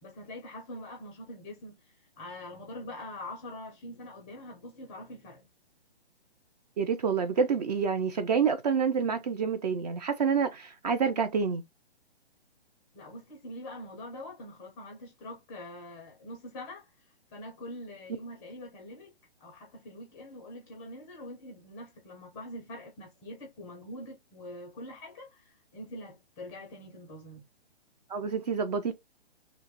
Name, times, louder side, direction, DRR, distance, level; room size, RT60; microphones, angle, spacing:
voice 1, 0.0-1.8 2.2-5.5 12.9-16.9 17.3-19.1 19.4-27.4, left 1 dB, 10° left, 0.5 m, -44 dB
voice 2, 6.8-11.6 28.1-28.9, right 6 dB, 40° right, 0.5 m, -28 dB
2.9 x 2.3 x 3.9 m
hypercardioid pair, 145°, 32 cm